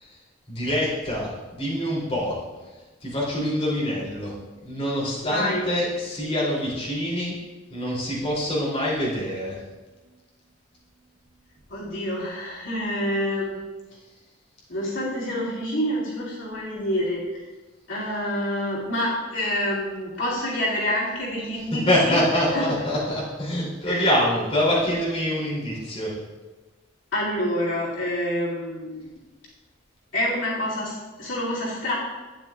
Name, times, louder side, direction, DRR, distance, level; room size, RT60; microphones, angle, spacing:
voice 1, 0.5-2.3 3.0-4.3 4.6-7.3 7.7-9.6 21.9-26.1, left 1 dB, 30° left, -7 dB, 3.0 m, -25 dB
voice 2, 5.2-5.6 11.7-13.6 14.7-17.4 17.9-22.2 22.5-22.7 23.9-24.1 27.1-29.1 30.1-31.9, left 1 dB, 85° left, -7 dB, 2.6 m, -27 dB
12.0 x 9.1 x 2.4 m, 1.2 s
head